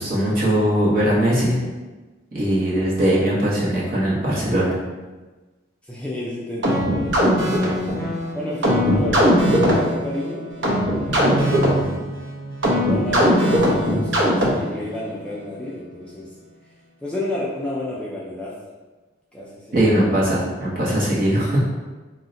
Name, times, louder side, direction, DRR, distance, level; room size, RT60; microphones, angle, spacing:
voice 1, 0.0-1.6 2.3-4.8 19.7-21.6, right 1 dB, 45° right, -7 dB, 0.9 m, -20 dB
voice 2, 5.8-7.6 8.3-10.5 11.0-11.9 12.8-16.3 17.0-18.5 19.3-19.8, left 1 dB, 5° left, -6 dB, 0.3 m, -31 dB
sound 1, 6.6-14.8, equal, 70° right, 0.7 m, -20 dB
2.7 x 2.1 x 3.7 m, 1.2 s
head